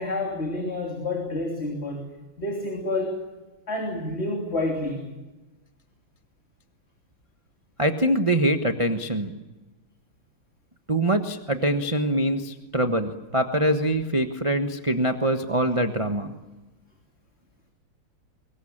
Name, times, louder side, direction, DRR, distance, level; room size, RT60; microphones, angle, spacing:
voice 1, 0.0-2.0 2.4-3.2 3.7-5.0, left 2 dB, 30° left, 1 dB, 3.5 m, -29 dB
voice 2, 7.8-9.3 10.9-16.3, right 1 dB, 20° right, 6 dB, 0.9 m, -24 dB
24.5 x 21.5 x 8.8 m, 1.1 s
omnidirectional pair, 2.4 m